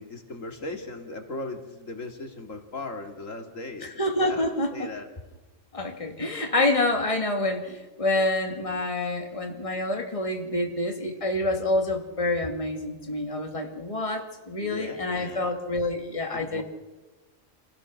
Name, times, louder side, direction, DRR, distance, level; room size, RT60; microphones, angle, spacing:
voice 1, 0.0-4.4 4.7-5.1 14.6-15.5 16.3-16.6, left 2 dB, 75° left, 4 dB, 2.6 m, -38 dB
voice 2, 3.8-4.9 5.7-16.6, left 2 dB, 25° left, 2 dB, 2.3 m, -27 dB
28.0 x 16.5 x 6.4 m, 1.2 s
omnidirectional pair, 1.4 m